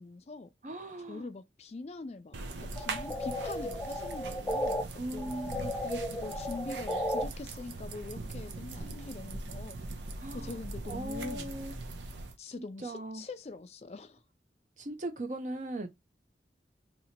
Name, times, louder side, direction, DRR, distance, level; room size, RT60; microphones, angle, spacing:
voice 1, 0.0-0.5 1.0-4.8 5.1-5.3 5.8-9.8 10.3-11.5 12.4-14.2, left 3 dB, 35° left, 0.4 m, -43 dB
voice 2, 0.6-1.3 5.0-5.8 10.2-10.6 10.8-11.7 12.8-13.2 14.8-15.9, right 1 dB, 45° right, 0.7 m, -39 dB
sound 1, 2.3-12.3, right 2 dB, 85° right, 0.7 m, -41 dB
sound 2, 2.8-4.8 5.2-7.2, left 1 dB, 10° left, 0.7 m, -34 dB
2.9 x 2.8 x 4.2 m
head